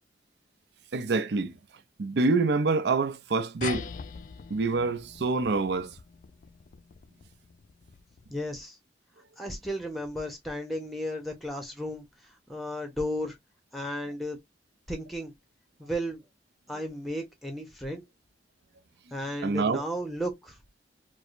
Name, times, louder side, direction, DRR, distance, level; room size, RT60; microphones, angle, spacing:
voice 1, 0.9-1.6 2.0-3.9 4.5-6.0 19.4-19.8, right 3 dB, 65° right, 0.5 m, -26 dB
sound 1, 3.6-8.5, left 6 dB, 45° left, 0.3 m, -42 dB
voice 2, 8.3-8.8 9.4-13.4 13.7-14.4 14.9-15.3 15.8-16.2 16.7-18.0 19.1-20.6, equal, ahead, 0.7 m, -34 dB
4.7 x 2.1 x 2.5 m
head